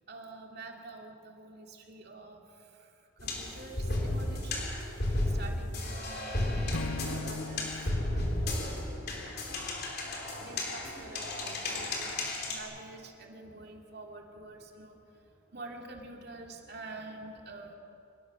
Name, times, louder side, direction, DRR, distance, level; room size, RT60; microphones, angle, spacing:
voice 1, 0.0-4.8 5.2-17.7, right 2 dB, 50° right, 1 dB, 2.8 m, -48 dB
sound 1, 3.2-12.6, left 1 dB, 50° left, 3.6 m, -33 dB
Acoustic guitar / Strum, 6.7-10.0, left 3 dB, 90° left, 0.8 m, -41 dB
25.0 x 19.0 x 6.5 m, 2.7 s
head